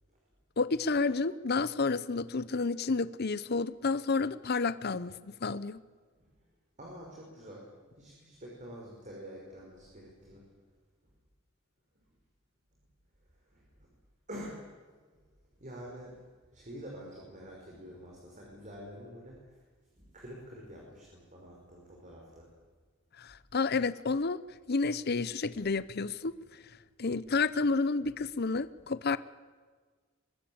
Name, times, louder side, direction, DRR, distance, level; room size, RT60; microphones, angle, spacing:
voice 1, 0.6-5.8 23.2-24.4 24.7-26.3 27.0-29.2, left 4 dB, 50° left, 16 dB, 0.7 m, -30 dB
voice 2, 6.8-7.6 8.0-10.4 13.5-13.6 14.3-14.6 15.6-16.2 16.5-19.4 20.0-22.5, equal, 35° right, -2 dB, 5.4 m, -47 dB
23.5 x 21.0 x 8.7 m, 1.5 s
head